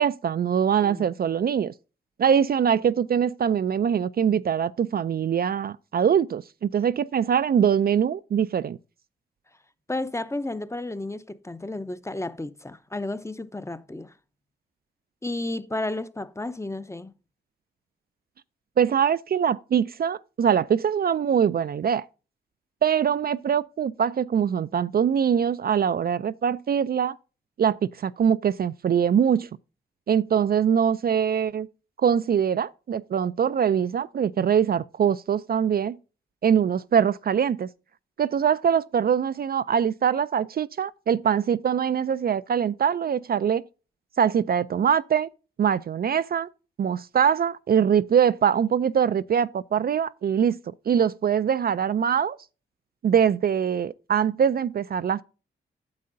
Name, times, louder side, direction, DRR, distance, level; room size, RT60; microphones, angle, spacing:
voice 1, 0.0-1.7 2.2-8.8 18.8-22.0 22.8-27.1 27.6-29.5 30.1-31.7 32.0-36.0 36.4-37.7 38.2-43.6 44.2-45.3 45.6-46.5 46.8-50.6 50.9-52.4 53.0-55.2, right 8 dB, 50° right, 0.4 m, -23 dB
voice 2, 9.9-14.1 15.2-17.1, left 2 dB, 15° left, 0.7 m, -32 dB
9.5 x 7.4 x 2.6 m
supercardioid pair, 45°, 20 cm